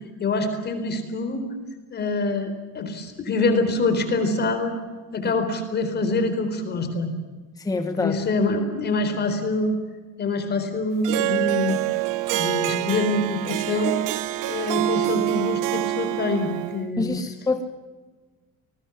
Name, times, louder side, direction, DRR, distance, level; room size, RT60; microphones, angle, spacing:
voice 1, 0.2-1.5 1.9-4.7 5.1-7.1 8.0-9.8 10.2-11.8 12.3-14.0 14.4-17.0, left 2 dB, 30° left, 8 dB, 4.2 m, -25 dB
voice 2, 7.6-8.1 17.0-17.6, left 3 dB, 10° left, 7 dB, 1.2 m, -26 dB
Harp, 11.0-16.9, right 16 dB, 80° right, 1.1 m, -26 dB
29.0 x 20.0 x 7.3 m, 1.3 s
cardioid pair, 175°, 31 cm